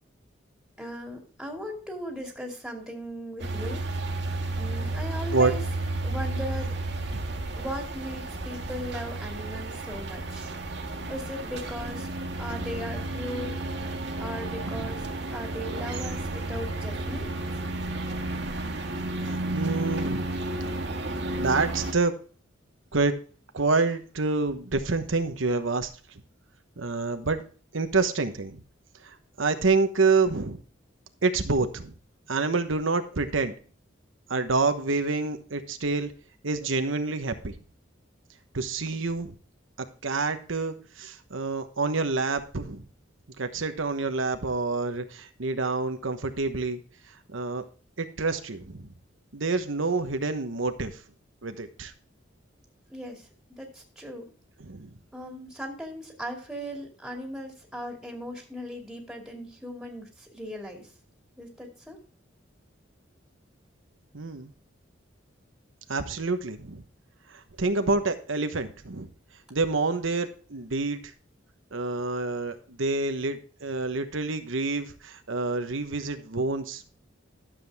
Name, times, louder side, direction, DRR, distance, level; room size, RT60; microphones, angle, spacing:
voice 1, 0.8-3.8 4.6-5.6 6.0-6.7 7.6-10.5 11.1-12.1 12.4-13.5 14.2-17.3 52.9-54.2 55.1-60.9 61.4-62.0, equal, ahead, 0 dB, 2.4 m, -38 dB
sound 1, 3.4-21.9, right 2 dB, 60° right, 1.8 m, -32 dB
voice 2, 14.6-14.9 16.5-16.6 19.5-20.3 21.4-22.1 22.9-23.1 23.5-25.9 26.8-27.4 27.7-28.6 29.0-30.6 31.2-31.9 32.3-33.5 34.3-36.1 36.4-37.5 38.5-39.3 40.0-42.9 43.4-46.8 47.3-47.6 48.0-48.9 49.3-51.0 51.4-51.9 54.6-54.9 64.1-64.5 65.9-66.8 67.3-69.1 69.5-71.1 71.7-76.8, right 3 dB, 85° right, 8 dB, 1.1 m, -27 dB
12.0 x 7.6 x 3.5 m, 0.39 s
head